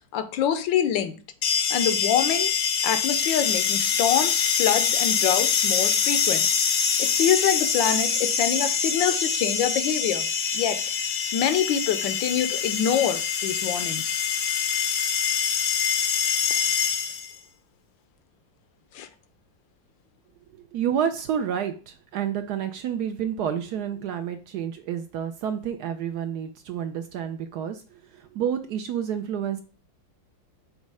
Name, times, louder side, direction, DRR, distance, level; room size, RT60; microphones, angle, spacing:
voice 1, 0.1-1.2 1.7-2.5 2.8-6.5 7.0-10.3 10.5-10.8 11.3-14.2 18.9-19.1, left 9 dB, 80° left, 11 dB, 1.4 m, -25 dB
sound 1, 1.4-17.4, left 7 dB, 60° left, 0.9 m, -25 dB
voice 2, 20.5-29.6, right 8 dB, 70° right, 8 dB, 1.0 m, -29 dB
5.3 x 4.1 x 4.7 m, 0.36 s
omnidirectional pair, 2.1 m